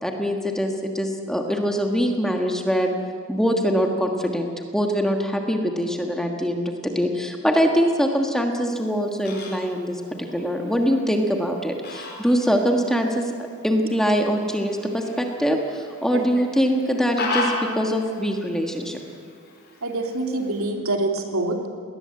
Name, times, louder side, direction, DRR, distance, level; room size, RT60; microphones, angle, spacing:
voice 1, 0.0-2.9 3.3-13.3 13.6-19.0, equal, ahead, 2 dB, 1.5 m, -23 dB
Fowl, 8.7-20.7, left 2 dB, 45° left, 4.5 m, -36 dB
voice 2, 19.8-21.7, right 2 dB, 75° right, 2 dB, 2.8 m, -25 dB
21.0 x 19.0 x 7.9 m, 2.1 s
head